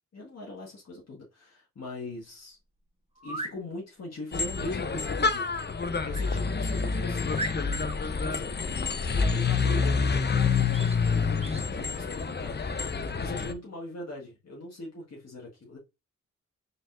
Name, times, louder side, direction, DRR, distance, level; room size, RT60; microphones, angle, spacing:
voice 1, 0.1-2.6 3.2-5.5 6.0-7.4 8.2-8.5 9.1-10.2 11.0-12.6 13.1-15.8, left 2 dB, 55° left, 1.6 m, -40 dB
sound 1, 3.1-3.6 6.1-6.3 6.8-6.9 7.3-8.0 10.7-11.0 11.4-11.7, right 2 dB, 20° right, 0.9 m, -37 dB
sound 2, 4.3-13.5, left 5 dB, 35° left, 0.6 m, -27 dB
4.1 x 3.9 x 2.4 m
cardioid pair, 60°, 31 cm